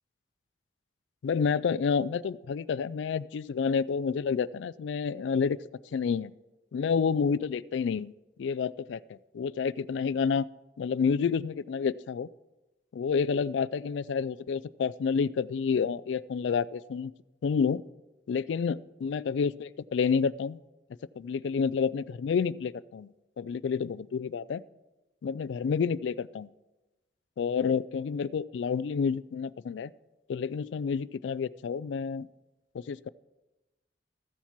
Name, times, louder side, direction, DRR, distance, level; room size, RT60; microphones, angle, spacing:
voice 1, 1.2-5.6 5.9-6.3 6.7-8.1 8.4-10.5 10.8-12.3 12.9-17.1 17.4-17.8 18.3-20.6 21.2-23.1 23.4-24.6 25.2-26.5 27.4-29.9 30.3-32.3 32.7-33.1, left 6 dB, 80° left, 20 dB, 0.3 m, -29 dB
14.5 x 7.2 x 5.9 m, 1.0 s
head